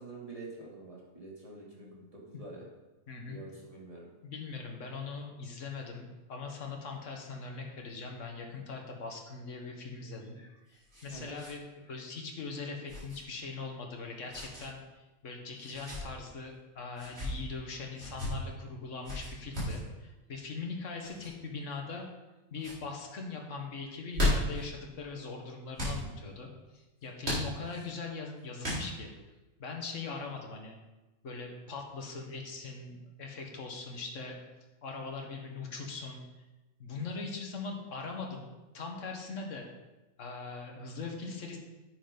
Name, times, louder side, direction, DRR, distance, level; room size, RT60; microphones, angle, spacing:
voice 1, 0.0-2.6 3.2-4.1 11.1-11.4, right 3 dB, 25° right, -4 dB, 2.9 m, -46 dB
voice 2, 1.8-2.1 3.1-3.4 4.2-10.4 10.7-22.1 22.5-29.1 29.6-30.8 31.2-34.4 34.8-36.2 36.8-38.5 38.7-39.7 40.2-41.6, left 4 dB, 60° left, 1 dB, 1.9 m, -41 dB
sound 1, 10.2-11.5 11.8-11.9 12.9-13.2 14.3-14.7 15.6-16.0 16.9-17.3 18.0-18.3 19.0-19.8 21.0-21.3 21.9-22.3 22.6-22.8 23.9-24.6 25.7-26.0 27.2-27.9 28.6-29.1, left 1 dB, 45° right, 4.3 m, -35 dB
10.0 x 8.0 x 5.3 m, 1.1 s
omnidirectional pair, 1.5 m